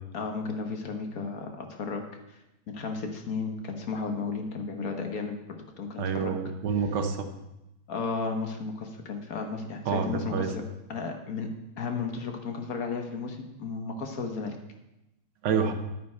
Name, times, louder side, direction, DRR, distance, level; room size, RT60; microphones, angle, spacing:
voice 1, 0.1-2.1 2.7-6.3 6.8-6.9 7.9-10.6 10.9-11.5 11.8-14.6, left 4 dB, 50° left, 5 dB, 1.2 m, -34 dB
voice 2, 6.0-7.3 9.9-10.5 15.4-15.7, right 6 dB, 65° right, 7 dB, 1.4 m, -27 dB
9.7 x 9.4 x 4.3 m, 0.94 s
omnidirectional pair, 2.3 m